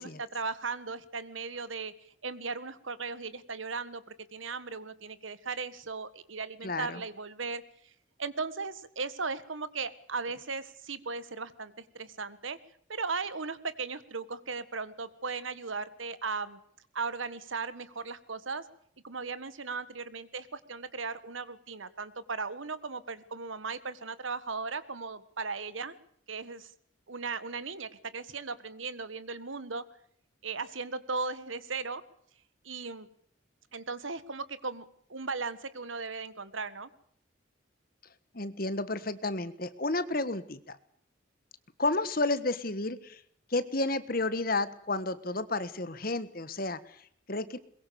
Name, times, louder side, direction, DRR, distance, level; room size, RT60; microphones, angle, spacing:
voice 1, 0.0-1.9 2.2-7.6 8.2-12.6 12.9-16.6 16.9-18.6 19.0-25.9 26.3-26.7 27.1-29.8 30.4-32.0 32.6-33.1 33.7-36.9, right 4 dB, 80° right, 15 dB, 1.7 m, -37 dB
voice 2, 6.6-7.0 38.3-40.8 41.8-43.2 43.5-47.6, left 2 dB, 45° left, 14 dB, 1.5 m, -31 dB
22.0 x 22.0 x 7.0 m, 0.66 s
head